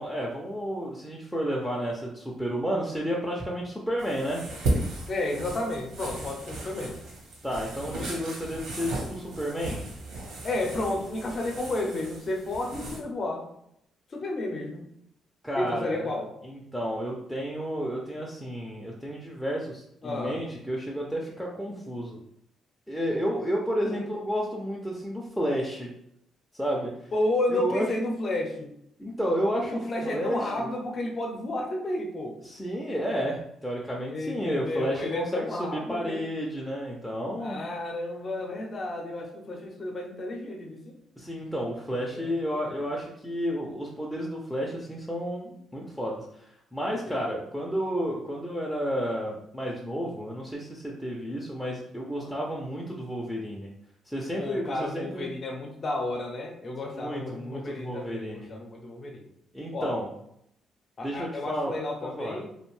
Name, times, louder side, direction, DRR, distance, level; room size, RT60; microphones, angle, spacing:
voice 1, 0.0-4.4 7.4-9.8 15.4-16.0 16.4-22.2 22.9-25.9 26.5-26.9 27.5-27.9 29.0-30.7 32.5-37.6 41.2-53.7 54.1-55.3 57.0-58.5 59.5-60.1 61.0-61.7 62.2-62.4, equal, ahead, -3 dB, 0.4 m, -31 dB
sound 1, 4.0-13.0, right 2 dB, 90° right, 0.8 m, -35 dB
voice 2, 5.1-7.0 7.9-8.1 10.4-13.5 14.1-14.8 15.5-16.3 20.0-20.4 23.8-24.0 27.1-28.7 29.7-32.4 34.1-36.3 37.4-41.0 41.9-42.7 47.0-47.3 52.2-52.3 54.4-59.3 59.7-60.0 61.0-62.5, left 2 dB, 45° left, 1 dB, 0.6 m, -32 dB
2.5 x 2.1 x 3.0 m, 0.76 s
cardioid pair, 90°, 0 cm